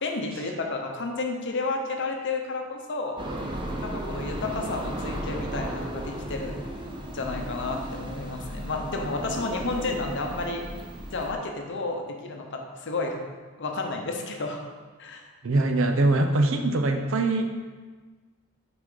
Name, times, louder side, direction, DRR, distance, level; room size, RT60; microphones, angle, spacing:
voice 1, 0.0-3.2 3.8-6.5 7.1-10.6 11.1-13.2 13.6-14.6 15.0-15.2, left 3 dB, 55° left, 2 dB, 0.8 m, -31 dB
sound 1, 3.2-11.3, right 1 dB, 20° right, 0.6 m, -35 dB
voice 2, 15.4-17.5, right 2 dB, 65° right, 6 dB, 0.6 m, -23 dB
6.2 x 5.0 x 3.9 m, 1.4 s
head